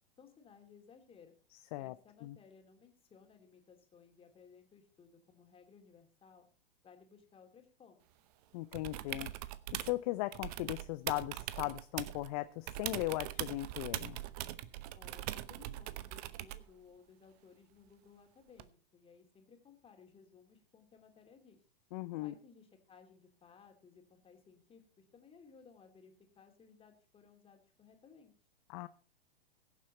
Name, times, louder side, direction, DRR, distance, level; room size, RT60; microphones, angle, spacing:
voice 1, 0.2-1.3 1.8-6.4 6.8-8.0 14.9-21.6 22.2-28.3, left 6 dB, 20° left, 4 dB, 2.9 m, -60 dB
voice 2, 8.5-9.3 9.7-14.2 21.9-22.3 28.7-28.9, left 18 dB, 40° left, 13 dB, 0.7 m, -38 dB
sound 1, 8.7-10.0 10.3-12.3 12.7-16.7 18.6-18.7, right 15 dB, 40° right, 0.9 m, -42 dB
22.0 x 7.4 x 4.1 m, 0.38 s
figure-of-eight pair, 105°, 29 cm